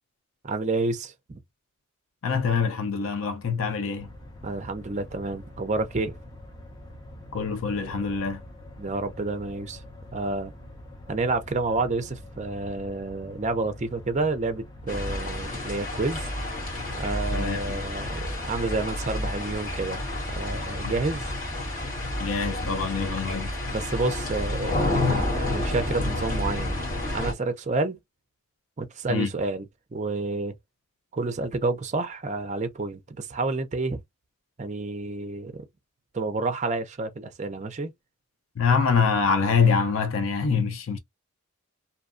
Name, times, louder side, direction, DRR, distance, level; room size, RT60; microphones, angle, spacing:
voice 1, 0.4-1.4 4.4-6.2 8.8-9.8 10.1-10.5 11.1-16.3 16.9-21.3 23.7-26.8 27.1-28.0 28.8-29.7 29.9-30.5 31.1-34.0 34.6-35.7 36.1-37.9, right 3 dB, 30° right, 0.4 m, -29 dB
voice 2, 2.2-4.1 7.3-8.4 17.3-17.8 20.8-20.9 22.2-23.5 29.1-29.3 38.6-41.0, left 5 dB, 70° left, 0.5 m, -25 dB
sound 1, 4.0-23.1, left 1 dB, 20° left, 0.5 m, -45 dB
sound 2, 14.9-27.3, left 1 dB, 35° left, 1.2 m, -30 dB
2.7 x 2.2 x 2.5 m
head